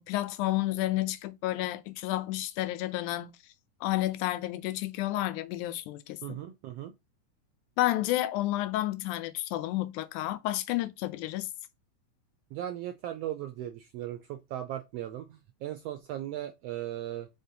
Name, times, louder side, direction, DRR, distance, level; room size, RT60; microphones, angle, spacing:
voice 1, 0.0-3.3 3.8-6.4 7.8-11.5, left 16 dB, 90° left, 2.1 m, -31 dB
voice 2, 6.2-6.9 12.5-17.3, right 12 dB, 80° right, 1.4 m, -37 dB
5.4 x 3.4 x 2.8 m
omnidirectional pair, 3.4 m